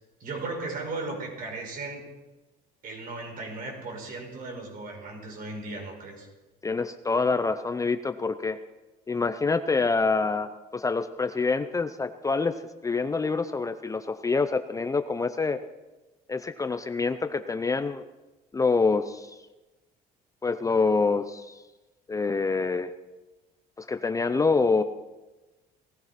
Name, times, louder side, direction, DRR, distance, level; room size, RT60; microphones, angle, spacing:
voice 1, 0.2-2.1 2.8-6.3, right 3 dB, 55° right, 1 dB, 5.4 m, -36 dB
voice 2, 6.6-8.6 9.1-15.6 16.3-18.0 18.5-19.3 20.4-21.6 22.1-22.9 23.8-24.8, left 4 dB, 20° left, 10 dB, 0.6 m, -26 dB
18.5 x 14.5 x 4.2 m, 1.1 s
cardioid pair, 110°, 17 cm